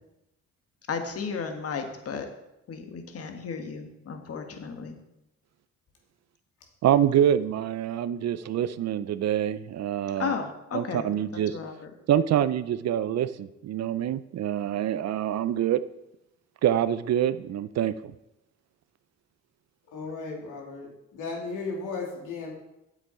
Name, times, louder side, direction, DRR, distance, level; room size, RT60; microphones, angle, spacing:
voice 1, 0.9-2.3 2.7-4.9 10.2-11.1 11.5-11.9, left 5 dB, 50° left, 5 dB, 1.5 m, -34 dB
voice 2, 6.8-10.3 10.7-11.6 12.1-15.8 16.6-17.9, right 10 dB, 60° right, 15 dB, 0.6 m, -25 dB
voice 3, 19.9-22.5, left 4 dB, 85° left, -1 dB, 2.7 m, -35 dB
9.4 x 8.0 x 4.4 m, 0.89 s
cardioid pair, 90°, 30 cm